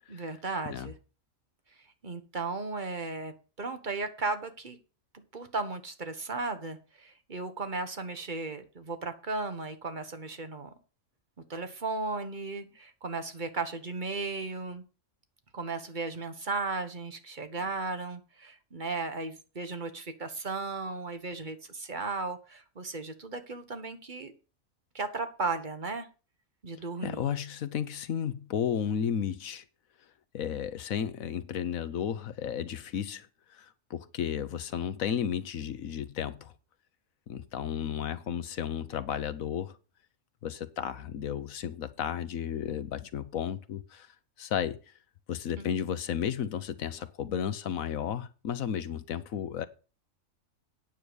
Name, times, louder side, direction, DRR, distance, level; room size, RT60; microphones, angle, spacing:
voice 1, 0.1-0.9 2.0-4.8 5.1-10.7 11.5-14.8 15.5-24.3 24.9-26.1 26.6-27.4 45.6-45.9, right 3 dB, 35° right, 1.5 m, -35 dB
voice 2, 27.0-29.6 30.3-33.3 33.5-36.5 37.3-39.8 40.4-44.1 44.4-44.8 45.3-49.6, left 8 dB, 85° left, 1.3 m, -33 dB
9.2 x 6.9 x 6.3 m
omnidirectional pair, 1.4 m